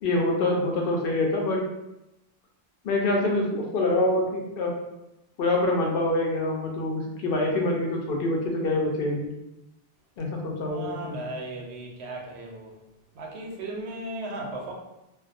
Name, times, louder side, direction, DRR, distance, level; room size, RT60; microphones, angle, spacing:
voice 1, 0.0-1.7 2.8-4.7 5.4-9.3 10.2-11.2, left 2 dB, 65° left, 0 dB, 0.7 m, -25 dB
voice 2, 10.7-12.7 13.2-14.7, right 2 dB, 90° right, -1 dB, 0.9 m, -36 dB
2.3 x 2.2 x 2.5 m, 0.92 s
omnidirectional pair, 1.1 m